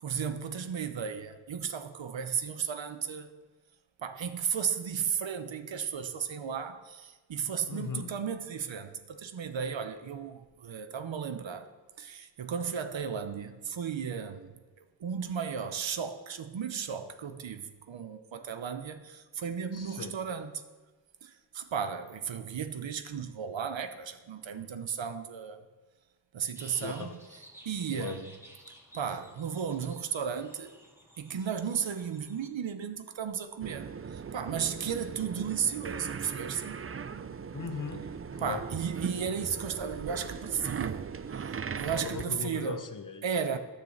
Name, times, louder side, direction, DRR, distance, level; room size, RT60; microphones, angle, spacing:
voice 1, 0.0-3.3 4.0-11.7 12.0-14.5 15.0-20.6 21.2-25.6 26.3-27.1 27.6-28.2 28.9-30.7 31.2-36.8 38.4-42.8 43.2-43.6, right 7 dB, 75° right, 0.9 m, -34 dB
voice 2, 7.7-8.1 19.7-20.2 26.7-27.1 27.9-28.2 37.5-38.7 41.9-43.2, left 6 dB, 45° left, 1.0 m, -39 dB
sound 1, 26.5-32.5, equal, 5° right, 2.2 m, -54 dB
sound 2, 33.6-42.3, right 6 dB, 30° right, 0.4 m, -39 dB
10.5 x 6.8 x 6.5 m
cardioid pair, 55°, 45 cm